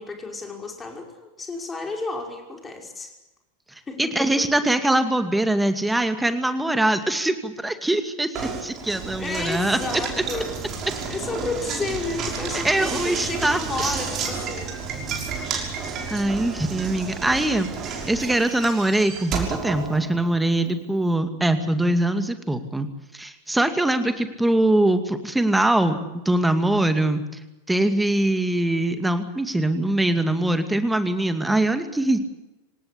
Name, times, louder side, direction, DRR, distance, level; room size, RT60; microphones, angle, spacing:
voice 1, 0.0-3.1 3.9-4.4 9.2-10.6 11.0-14.7 15.0-15.3, left 3 dB, 15° left, 2 dB, 5.7 m, -32 dB
voice 2, 4.0-9.8 12.6-14.0 16.1-22.9 23.1-26.0 26.3-27.2 27.7-32.2, right 1 dB, 5° right, 9 dB, 2.4 m, -22 dB
Knock, 8.3-20.5, right 5 dB, 30° right, 6.0 m, -31 dB
26.5 x 18.5 x 8.5 m, 0.99 s
figure-of-eight pair, 90°, 0 cm